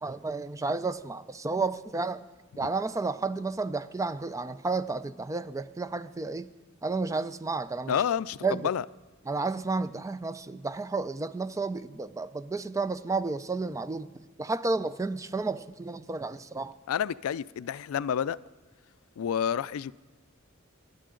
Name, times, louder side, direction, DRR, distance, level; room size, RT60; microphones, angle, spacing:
voice 1, 0.0-2.2 2.6-6.5 6.8-8.0 8.4-8.7 9.3-14.1 14.4-16.7, right 3 dB, 15° right, 14 dB, 0.4 m, -31 dB
voice 2, 7.9-8.4 8.6-8.8 16.9-18.4 19.2-19.9, left 8 dB, 90° left, 19 dB, 0.3 m, -29 dB
25.5 x 11.5 x 3.8 m, 1.3 s
head